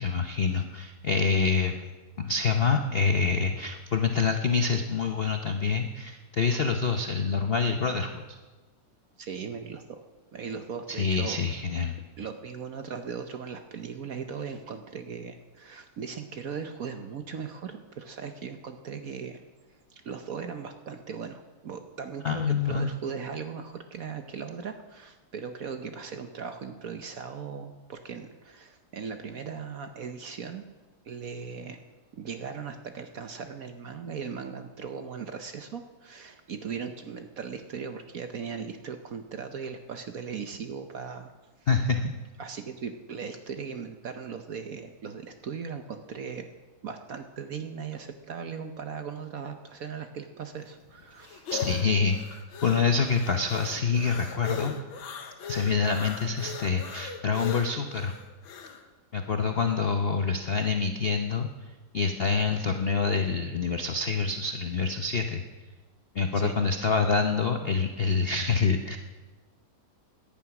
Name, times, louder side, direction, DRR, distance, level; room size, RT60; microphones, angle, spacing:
voice 1, 0.0-1.8 2.2-8.4 10.9-12.0 22.2-22.9 41.7-42.2 51.5-54.8 55.5-58.1 59.1-61.5 61.9-65.4 66.1-69.0, left 5 dB, 65° left, 6 dB, 0.6 m, -26 dB
voice 2, 9.2-10.0 10.3-11.4 12.2-19.4 19.9-30.6 31.0-31.8 32.1-41.3 42.4-46.5 46.8-51.5 66.3-66.6, right 6 dB, 55° right, 7 dB, 1.0 m, -38 dB
sound 1, 50.6-58.8, left 7 dB, 80° left, 1.9 m, -39 dB
17.5 x 11.0 x 5.9 m, 1.3 s
omnidirectional pair, 2.2 m